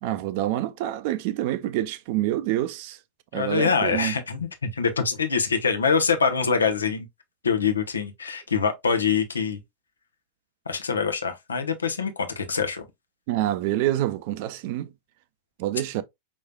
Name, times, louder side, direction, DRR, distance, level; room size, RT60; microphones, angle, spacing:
voice 1, 0.0-3.0 3.3-4.1 13.3-14.9 15.6-16.0, right 14 dB, 50° right, 0.5 m, -27 dB
voice 2, 3.3-7.1 7.4-9.6 10.7-12.8, left 5 dB, 75° left, 0.8 m, -24 dB
5.4 x 3.1 x 2.3 m
figure-of-eight pair, 90°, 0 cm